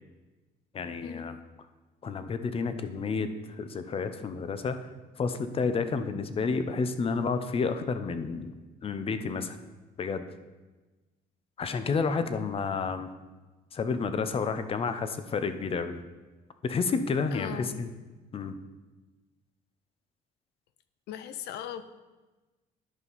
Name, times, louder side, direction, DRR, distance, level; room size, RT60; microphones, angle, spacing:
voice 1, 0.7-1.4 2.0-3.3 3.6-4.8 5.2-8.5 8.8-9.6 10.0-10.3 11.6-13.1 13.7-16.0 16.6-17.9 18.3-18.6, left 5 dB, 35° left, 10 dB, 0.7 m, -30 dB
voice 2, 17.3-17.8 21.1-21.8, left 10 dB, 75° left, 12 dB, 0.6 m, -39 dB
11.0 x 5.4 x 4.1 m, 1.2 s
cardioid pair, 110°, 17 cm